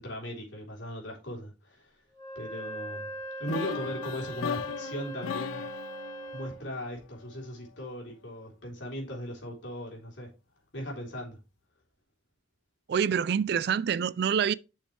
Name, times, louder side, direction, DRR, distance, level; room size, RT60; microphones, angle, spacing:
voice 1, 0.0-1.9 2.4-3.1 3.4-5.6 6.3-10.3 10.7-11.4, equal, 70° left, 3.7 m, -38 dB
Wind instrument woodwind instrument, 2.1-6.6, right 1 dB, 20° left, 4.8 m, -40 dB
sound 1, 3.5-7.4, left 8 dB, 90° left, 0.3 m, -38 dB
voice 2, 12.9-14.5, right 7 dB, 55° right, 0.3 m, -26 dB
9.1 x 6.4 x 3.3 m
head